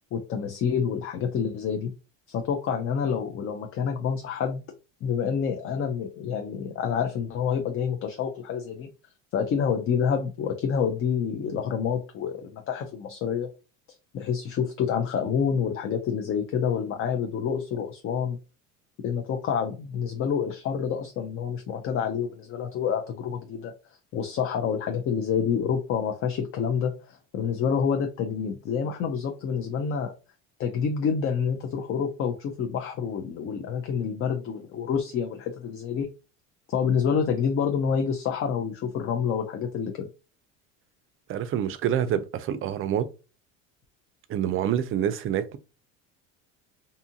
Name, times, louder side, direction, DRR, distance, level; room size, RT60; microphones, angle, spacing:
voice 1, 0.1-1.9 2.3-4.6 5.0-8.9 9.3-13.5 14.1-18.4 19.0-23.7 24.1-30.1 30.6-36.1 36.7-40.1, left 7 dB, 40° left, 0.5 m, -28 dB
voice 2, 41.3-43.1 44.3-45.6, right 10 dB, 40° right, 0.4 m, -27 dB
2.7 x 2.4 x 2.7 m
supercardioid pair, 115°, 36 cm